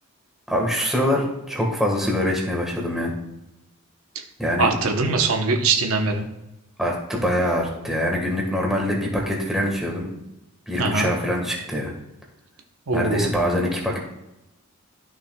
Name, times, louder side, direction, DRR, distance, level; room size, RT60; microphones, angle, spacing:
voice 1, 0.5-3.1 4.4-4.7 6.8-10.1 10.7-11.9 12.9-14.0, equal, ahead, -2 dB, 1.5 m, -24 dB
voice 2, 4.6-6.2 10.8-11.1 12.9-13.3, right 3 dB, 70° right, 3 dB, 0.9 m, -22 dB
12.5 x 6.1 x 2.3 m, 0.94 s
head